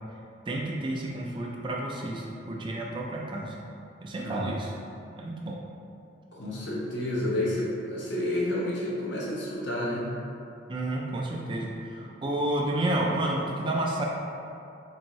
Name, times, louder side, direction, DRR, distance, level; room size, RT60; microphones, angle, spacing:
voice 1, 0.5-3.6 4.0-4.7 5.1-5.6 10.7-14.0, right 1 dB, 25° right, -2 dB, 0.4 m, -30 dB
voice 2, 6.3-10.1, left 1 dB, 65° left, -5 dB, 0.8 m, -30 dB
4.4 x 2.6 x 3.0 m, 2.6 s
head